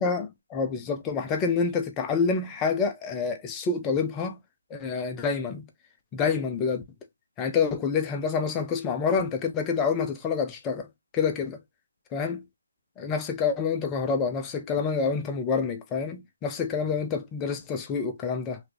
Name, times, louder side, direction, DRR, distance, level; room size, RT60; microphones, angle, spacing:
voice 1, 0.0-4.4 4.7-5.6 6.1-6.8 7.4-10.9 11.1-11.6 12.1-12.4 13.0-18.6, left 5 dB, 10° left, 0.3 m, -27 dB
3.0 x 2.6 x 3.2 m
hypercardioid pair, 180°, 0 cm